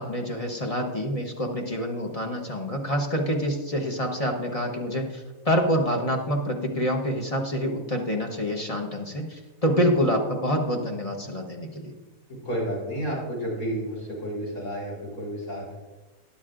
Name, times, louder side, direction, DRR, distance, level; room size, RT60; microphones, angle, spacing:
voice 1, 0.0-5.1 5.5-9.3 9.6-11.9, equal, 30° left, 2 dB, 0.9 m, -26 dB
voice 2, 12.4-15.7, equal, 70° left, -4 dB, 4.3 m, -31 dB
12.5 x 10.5 x 2.5 m, 1.2 s
omnidirectional pair, 1.5 m